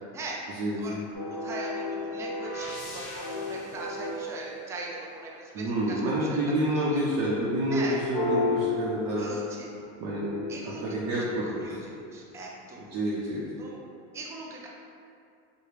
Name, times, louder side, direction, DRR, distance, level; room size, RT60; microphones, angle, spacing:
voice 1, 0.5-1.0 5.5-9.3 10.0-10.3 10.6-11.8 12.8-13.4, right 1 dB, 50° right, -7 dB, 0.7 m, -28 dB
sound 1, 1.1-5.3 8.1-9.6 10.2-11.9, left 3 dB, 65° left, 1.5 m, -33 dB
voice 2, 1.3-6.4 6.7-7.0 7.7-8.0 9.2-9.7 10.5-11.2 11.6-12.8 13.6-13.8 14.1-14.7, right 2 dB, 10° right, -3 dB, 0.3 m, -40 dB
4.8 x 2.2 x 4.8 m, 2.4 s
cardioid pair, 150°, 33 cm